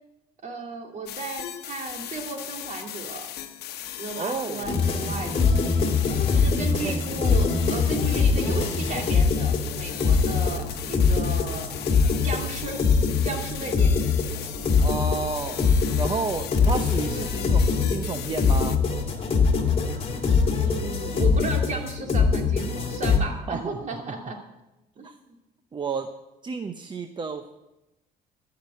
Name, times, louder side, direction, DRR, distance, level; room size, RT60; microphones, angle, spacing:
voice 1, 0.4-3.3 4.0-5.3 6.3-11.7 12.2-12.8 13.2-14.0 20.6-24.4 25.0-25.1, right 3 dB, 45° right, 3 dB, 2.5 m, -34 dB
sound 1, 1.1-18.8, left 11 dB, 70° left, 1.0 m, -38 dB
voice 2, 4.1-4.7 6.8-6.9 14.8-15.7 16.0-18.8 23.5-24.1 25.0-25.2 25.7-26.1 26.4-27.5, right 4 dB, 25° right, 8 dB, 0.7 m, -31 dB
sound 2, 4.7-23.2, left 5 dB, 35° left, 1.9 m, -23 dB
14.0 x 5.9 x 8.9 m, 0.99 s
cardioid pair, 110°, 17 cm